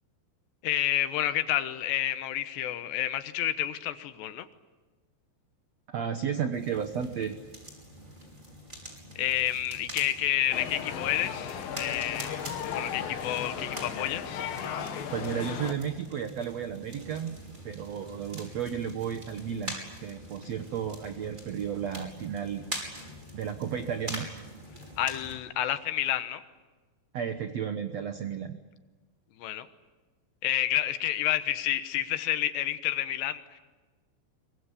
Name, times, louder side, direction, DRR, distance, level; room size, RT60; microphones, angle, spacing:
voice 1, 0.6-4.5 9.2-12.4 12.6-14.4 25.0-26.4 29.4-29.7 30.4-33.6, left 12 dB, 85° left, 11 dB, 3.4 m, -29 dB
voice 2, 5.9-7.4 15.1-17.4 17.6-22.6 23.3-24.3 27.1-28.6, right 8 dB, 80° right, 8 dB, 1.5 m, -33 dB
sound 1, 6.5-25.3, equal, 10° right, 5.2 m, -44 dB
sound 2, 10.5-15.7, left 8 dB, 65° left, 3.2 m, -36 dB
24.0 x 23.0 x 9.9 m, 1.3 s
omnidirectional pair, 4.8 m